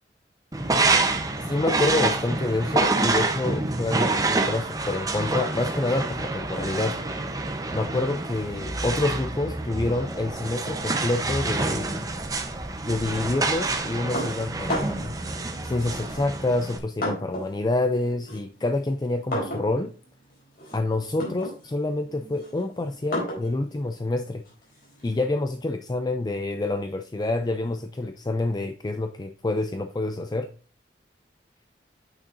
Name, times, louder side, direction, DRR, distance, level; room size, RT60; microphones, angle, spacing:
sound 1, 0.5-16.8, right 3 dB, 20° right, 0.8 m, -27 dB
voice 1, 1.4-7.0 7.7-12.1 12.8-15.2 15.6-19.9 20.7-24.4 25.0-30.5, left 2 dB, 25° left, 8 dB, 0.4 m, -27 dB
sound 2, 14.1-15.2 16.1-17.6 17.9-25.2, equal, 55° left, 4.1 m, -34 dB
8.9 x 6.2 x 2.6 m, 0.39 s
head